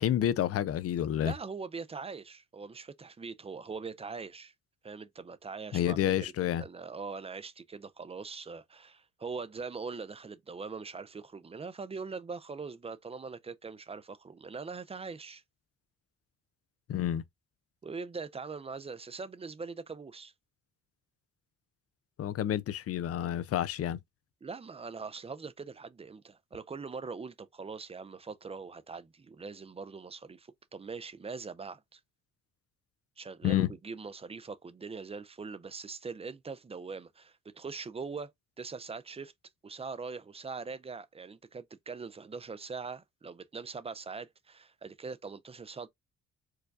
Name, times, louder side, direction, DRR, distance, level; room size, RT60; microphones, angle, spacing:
voice 1, 0.0-1.3 5.7-6.6 16.9-17.2 22.2-24.0 33.4-33.7, left 11 dB, 50° left, 0.5 m, -29 dB
voice 2, 1.2-4.5 4.8-15.4 17.8-20.3 24.4-32.0 33.2-38.3 38.6-39.3 39.6-45.9, right 4 dB, 20° right, 0.4 m, -42 dB
4.6 x 2.2 x 2.4 m
cardioid pair, 90°, 30 cm